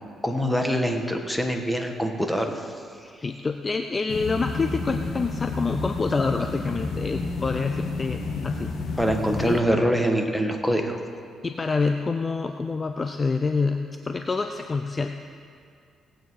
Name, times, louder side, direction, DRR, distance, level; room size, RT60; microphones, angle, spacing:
voice 1, 0.2-2.7 9.0-11.0, equal, 5° left, 4 dB, 1.5 m, -24 dB
voice 2, 3.2-9.0 9.4-9.6 11.4-15.1, left 4 dB, 30° left, 6 dB, 0.5 m, -27 dB
sound 1, 4.1-9.6, left 4 dB, 65° left, 1.3 m, -30 dB
18.0 x 8.9 x 4.7 m, 2.3 s
cardioid pair, 90°, 0 cm